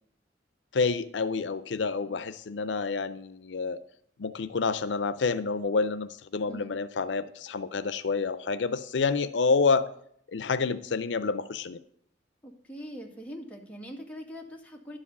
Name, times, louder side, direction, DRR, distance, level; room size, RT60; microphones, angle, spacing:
voice 1, 0.7-3.8 4.2-9.9 10.3-11.8, left 4 dB, 90° left, 13 dB, 0.5 m, -28 dB
voice 2, 12.4-15.0, equal, 10° left, -1 dB, 1.9 m, -43 dB
11.5 x 4.9 x 8.2 m, 0.66 s
head